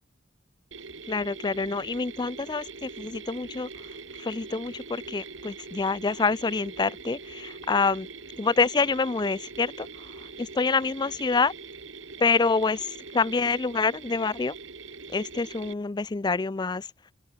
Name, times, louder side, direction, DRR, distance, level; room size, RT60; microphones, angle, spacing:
Mechanisms, 0.7-15.7, right 4 dB, 75° right, 2.8 m, -43 dB
voice 1, 1.1-3.7 4.2-8.1 8.4-9.9 10.4-11.5 12.2-14.5 15.1-16.9, left 4 dB, 20° left, 0.4 m, -26 dB
open air
head